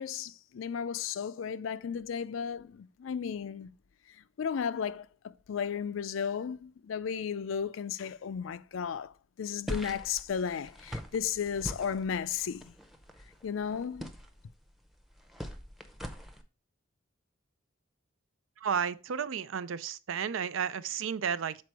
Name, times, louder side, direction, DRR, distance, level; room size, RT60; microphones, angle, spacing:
voice 1, 0.0-3.7 4.4-12.7 13.4-14.1, left 7 dB, 80° left, 0.4 m, -34 dB
sound 1, 9.7-16.4, equal, ahead, 0.7 m, -43 dB
voice 2, 18.6-21.6, right 7 dB, 80° right, 0.5 m, -32 dB
6.7 x 4.2 x 4.6 m
head